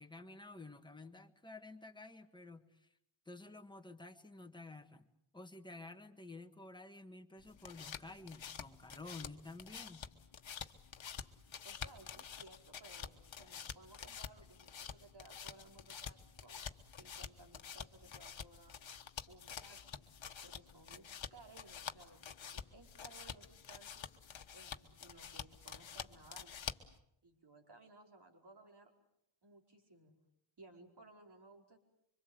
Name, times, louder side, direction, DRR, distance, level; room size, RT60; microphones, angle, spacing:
voice 1, 0.0-2.9 3.2-5.1 5.3-10.1, left 2 dB, 10° left, 5 dB, 1.5 m, -52 dB
sound 1, 7.4-27.0, left 7 dB, 65° left, 1.4 m, -49 dB
voice 2, 11.6-18.8 19.3-20.1 20.4-24.1 24.5-26.6 27.2-28.9 29.4-30.1 30.6-31.8, right 2 dB, 55° right, 2 dB, 4.9 m, -60 dB
26.0 x 25.0 x 8.0 m, 0.76 s
wide cardioid pair, 145°, 49 cm